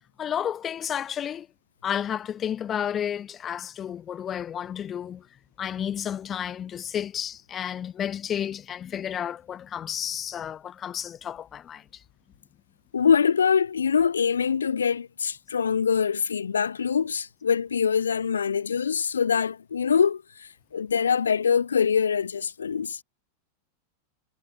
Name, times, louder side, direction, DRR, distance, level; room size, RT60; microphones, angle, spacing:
voice 1, 0.2-1.5 1.8-5.3 5.6-12.0, left 9 dB, 25° left, 0.7 m, -31 dB
voice 2, 12.9-23.0, left 6 dB, 70° left, 0.6 m, -24 dB
figure-of-eight pair, 90°, 0 cm